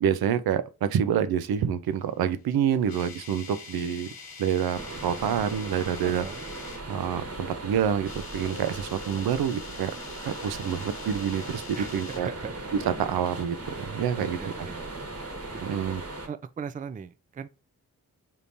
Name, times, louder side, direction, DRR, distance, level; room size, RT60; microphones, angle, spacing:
voice 1, 0.0-4.1 4.4-6.2 6.9-9.9 10.2-12.3 13.0-14.7 15.6-16.0, right 8 dB, 75° right, 0.5 m, -27 dB
sound 1, 2.4-6.8 7.9-12.2, left 5 dB, 70° left, 1.0 m, -45 dB
sound 2, 4.7-16.3, right 2 dB, 40° right, 1.3 m, -38 dB
voice 2, 6.0-6.4 11.7-12.5 14.1-14.9 15.5-15.9 16.3-17.5, right 6 dB, 25° right, 0.4 m, -39 dB
3.6 x 2.8 x 2.6 m
cardioid pair, 50°, 37 cm